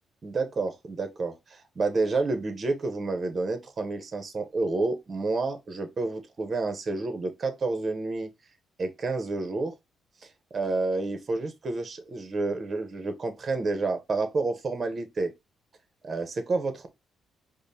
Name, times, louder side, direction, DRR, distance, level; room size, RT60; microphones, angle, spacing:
voice 1, 0.2-8.3 8.8-9.7 10.5-15.3 16.0-16.9, right 3 dB, 40° right, 0.7 m, -29 dB
5.0 x 2.0 x 2.7 m
cardioid pair, 90°, 0 cm